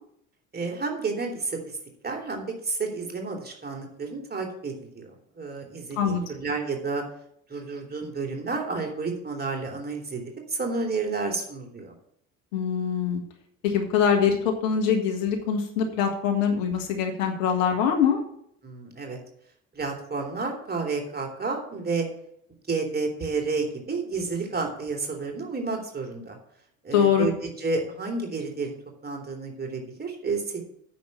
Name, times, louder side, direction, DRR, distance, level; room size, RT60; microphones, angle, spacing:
voice 1, 0.5-1.8 2.0-7.0 7.5-11.9 18.6-19.2 19.7-22.1 22.7-26.4 26.8-28.8 29.0-30.6, right 4 dB, 20° right, 2 dB, 3.0 m, -31 dB
voice 2, 12.5-13.2 13.6-18.2 26.9-27.3, left 7 dB, 65° left, 3 dB, 1.7 m, -23 dB
9.3 x 6.1 x 7.1 m, 0.70 s
figure-of-eight pair, 60°, 41 cm